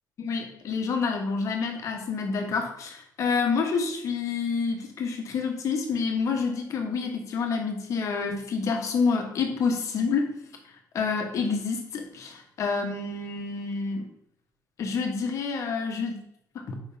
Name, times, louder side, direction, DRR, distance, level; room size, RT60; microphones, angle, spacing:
voice 1, 0.2-10.3 10.9-14.1 14.8-16.2 16.5-16.7, left 5 dB, 45° left, 3 dB, 1.0 m, -28 dB
4.9 x 3.6 x 5.5 m, 0.74 s
cardioid pair, 170°, 7 cm